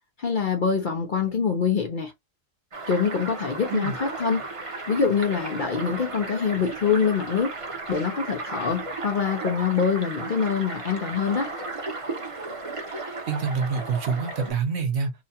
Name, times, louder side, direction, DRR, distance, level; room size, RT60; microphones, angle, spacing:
voice 1, 0.2-2.1 2.9-4.4 4.9-7.5 7.9-11.5, left 6 dB, 50° left, 0.6 m, -25 dB
sound 1, 2.7-14.5, right 3 dB, 30° right, 0.7 m, -35 dB
voice 2, 13.3-15.1, right 5 dB, 60° right, 1.0 m, -26 dB
2.8 x 2.3 x 2.7 m
omnidirectional pair, 1.3 m